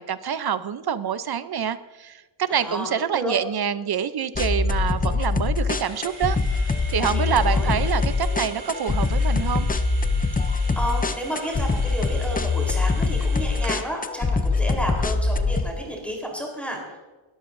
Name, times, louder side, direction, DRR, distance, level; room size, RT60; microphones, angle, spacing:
voice 1, 0.0-6.4 6.9-9.7, right 8 dB, 50° right, 13 dB, 0.7 m, -26 dB
voice 2, 2.5-3.4 7.1-7.8 10.7-17.0, equal, 5° left, -1 dB, 3.7 m, -31 dB
sound 1, 4.4-15.7, left 4 dB, 20° left, 0.5 m, -23 dB
sound 2, 5.8-14.0, right 3 dB, 75° right, 4.6 m, -42 dB
20.0 x 14.0 x 2.6 m, 1.2 s
wide cardioid pair, 150°, 48 cm